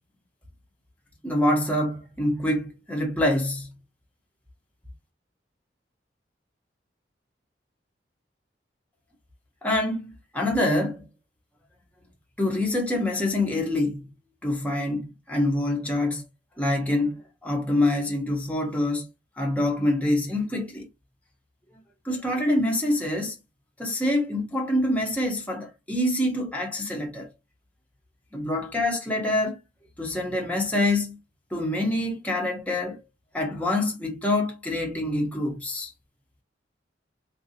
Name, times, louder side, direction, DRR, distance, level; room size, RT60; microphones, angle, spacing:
voice 1, 1.2-3.7 9.6-11.0 12.4-14.0 14.4-16.2 16.6-19.1 19.4-20.9 22.0-23.3 23.8-27.3 28.3-29.6 30.0-31.2 31.5-33.0 33.3-35.9, left 1 dB, 10° left, 0.9 m, -26 dB
3.7 x 2.5 x 2.8 m
head